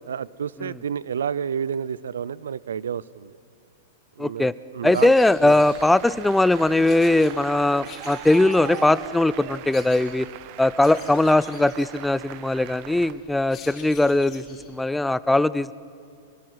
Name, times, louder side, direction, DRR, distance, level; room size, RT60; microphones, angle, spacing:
voice 1, 0.1-3.4 4.2-5.1 5.4-5.6, right 7 dB, 85° right, 22 dB, 0.5 m, -30 dB
voice 2, 4.2-4.5 4.8-10.3 10.6-15.7, left 2 dB, 5° left, 18 dB, 0.5 m, -20 dB
sound 1, 4.9-14.8, left 6 dB, 30° left, 4.6 m, -47 dB
Applause, 5.2-13.1, right 13 dB, 50° right, 1.1 m, -40 dB
25.0 x 19.5 x 8.1 m, 2.3 s
hypercardioid pair, 125°, 0 cm